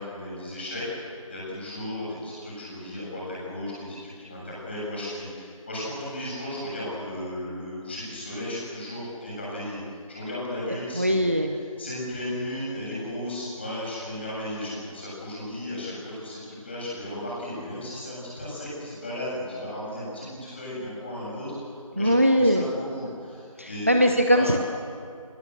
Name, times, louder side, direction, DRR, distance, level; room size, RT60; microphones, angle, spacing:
voice 1, 0.0-9.8 10.1-11.2 11.8-23.9 24.3-24.5, left 1 dB, 20° left, -6 dB, 7.9 m, -35 dB
voice 2, 11.0-11.6 22.0-22.7 23.6-24.6, equal, 25° right, 5 dB, 0.8 m, -21 dB
23.5 x 21.0 x 8.2 m, 2.3 s
figure-of-eight pair, 170°, 18 cm